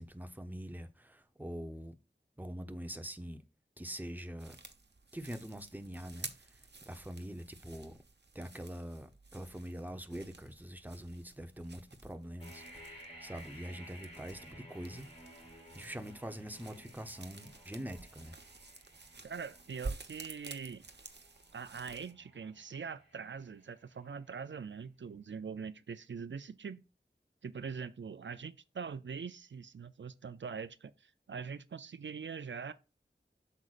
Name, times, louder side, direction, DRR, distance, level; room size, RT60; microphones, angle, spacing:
voice 1, 0.0-1.9 2.4-3.4 3.8-4.6 5.1-8.0 8.3-15.4 15.7-18.4, equal, 10° right, 0.9 m, -44 dB
sound 1, 4.4-22.1, right 3 dB, 65° right, 1.0 m, -51 dB
sound 2, 12.4-24.2, equal, 30° left, 4.5 m, -56 dB
voice 2, 19.2-20.8 21.5-26.8 27.4-32.7, right 6 dB, 85° right, 0.5 m, -43 dB
8.0 x 6.3 x 2.5 m
wide cardioid pair, 55°, 19 cm